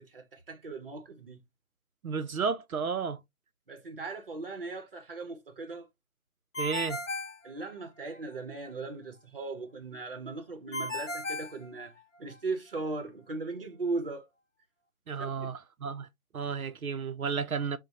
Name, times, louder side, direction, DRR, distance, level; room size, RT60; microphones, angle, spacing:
voice 1, 0.0-1.4 3.7-5.9 7.4-14.3 15.2-15.5, right 3 dB, 40° right, 0.8 m, -38 dB
voice 2, 2.0-3.2 6.6-7.0 15.1-16.1 16.3-17.8, right 5 dB, 80° right, 0.6 m, -32 dB
Ringtone, 6.5-8.2 10.7-12.4, left 2 dB, 60° left, 0.8 m, -36 dB
6.0 x 2.2 x 2.7 m
figure-of-eight pair, 155°, 42 cm